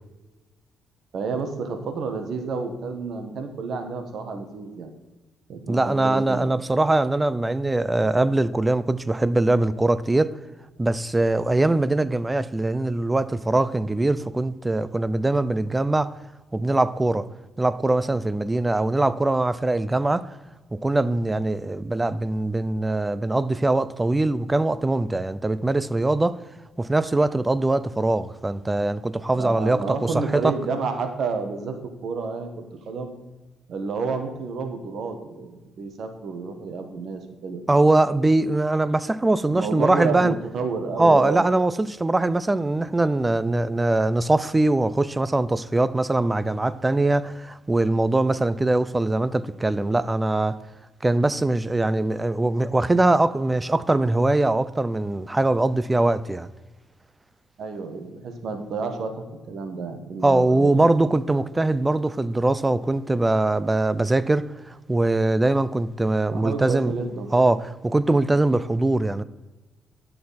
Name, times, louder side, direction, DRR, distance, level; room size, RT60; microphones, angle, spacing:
voice 1, 1.1-4.9 5.5-6.4 29.3-33.1 33.7-37.6 39.5-41.5 57.6-60.7 66.3-67.5, right 4 dB, 65° right, 1.6 m, -30 dB
voice 2, 5.7-10.4 10.8-16.1 16.5-17.3 17.6-20.3 20.7-26.4 26.8-30.5 37.7-40.3 41.0-50.6 51.0-56.5 60.2-66.9 67.3-69.2, right 2 dB, 15° right, 0.5 m, -22 dB
11.5 x 6.6 x 4.2 m
cardioid pair, 90°, 0 cm